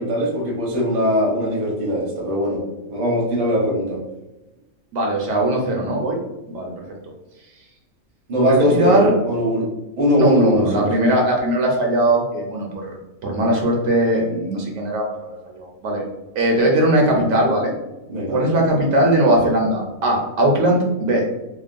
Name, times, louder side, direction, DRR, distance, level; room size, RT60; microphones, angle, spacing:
voice 1, 0.0-2.6 2.9-4.0 8.3-9.7 10.0-10.9 18.1-18.4, equal, 40° right, -3 dB, 0.7 m, -20 dB
voice 2, 4.9-6.2 6.5-6.7 8.5-9.1 10.2-16.0 16.4-17.7 18.3-21.2, right 1 dB, 70° right, -1 dB, 1.0 m, -19 dB
3.0 x 2.0 x 2.4 m, 1.0 s
omnidirectional pair, 1.5 m